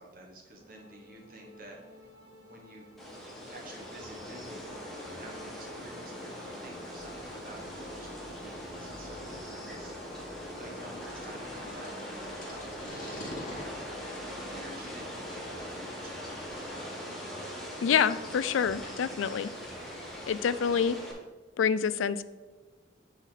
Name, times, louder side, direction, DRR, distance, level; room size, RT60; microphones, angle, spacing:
voice 1, 0.0-2.9 3.4-10.2 10.6-16.9, right 1 dB, 45° right, 0 dB, 1.4 m, -50 dB
sound 1, 0.5-19.1, equal, 20° right, 1.9 m, -55 dB
sound 2, 3.0-21.1, equal, ahead, 1.2 m, -41 dB
sound 3, 6.9-21.0, left 1 dB, 45° left, 2.3 m, -49 dB
voice 2, 17.8-19.5 20.3-21.0 21.6-22.2, left 7 dB, 85° left, 15 dB, 0.4 m, -27 dB
9.0 x 4.2 x 4.1 m, 1.3 s
head